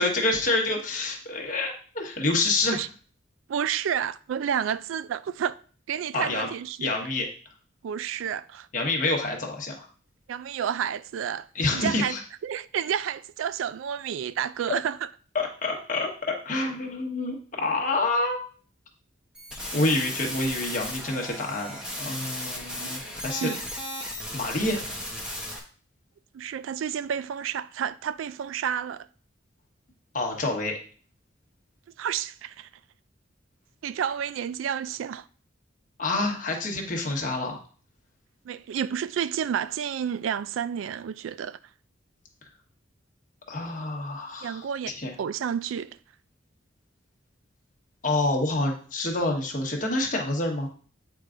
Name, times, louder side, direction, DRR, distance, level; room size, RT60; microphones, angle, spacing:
voice 1, 0.0-2.8 6.1-6.5 6.8-7.3 8.7-9.9 11.5-12.2 15.3-16.1 16.4-18.4 19.7-23.5 24.3-24.8 30.1-30.8 36.0-37.6 43.5-45.1 48.0-50.7, left 2 dB, 40° left, 1.2 m, -27 dB
voice 2, 3.5-5.6 5.9-7.0 7.8-8.7 10.3-11.5 11.7-12.2 12.4-15.1 22.8-23.2 23.4-23.6 26.3-29.1 32.0-32.7 33.8-35.3 38.5-41.6 44.4-44.9 45.2-46.0, right 8 dB, 85° right, 0.3 m, -30 dB
sound 1, 19.3-25.6, equal, 5° right, 0.9 m, -35 dB
8.2 x 4.6 x 2.5 m
head